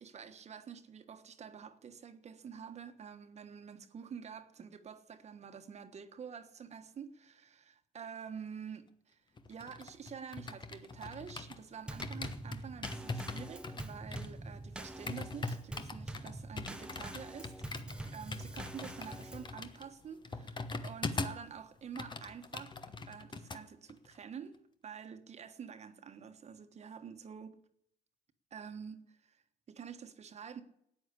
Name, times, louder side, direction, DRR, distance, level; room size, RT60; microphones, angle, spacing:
voice 1, 0.0-9.2 9.5-17.5 18.1-22.8 23.1-27.6 28.5-30.6, right 7 dB, 40° right, 1.4 m, -48 dB
sound 1, 9.4-11.7 12.0-21.5 21.8-23.6 23.9-24.2, left 3 dB, 25° left, 1.1 m, -42 dB
Drum kit / Snare drum / Bass drum, 11.9-19.6, right 1 dB, 5° right, 0.9 m, -45 dB
13.0 x 9.5 x 8.3 m
cardioid pair, 110°, 17 cm